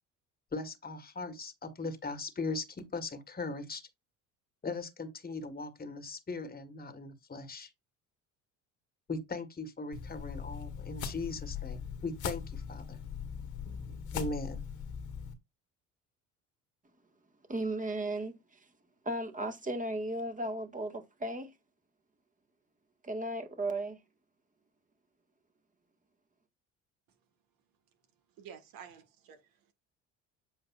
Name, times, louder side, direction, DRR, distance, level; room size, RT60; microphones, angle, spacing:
voice 1, 0.5-3.8 4.6-7.7 9.1-13.0 14.1-14.6, left 3 dB, 25° left, 1.5 m, -39 dB
sound 1, 9.9-15.3, left 7 dB, 60° left, 1.5 m, -40 dB
voice 2, 17.5-18.6 19.0-21.5 23.0-24.0, right 1 dB, 20° right, 1.7 m, -35 dB
voice 3, 28.4-29.7, right 8 dB, 70° right, 1.8 m, -51 dB
7.9 x 5.2 x 2.5 m
hypercardioid pair, 70°, 35 cm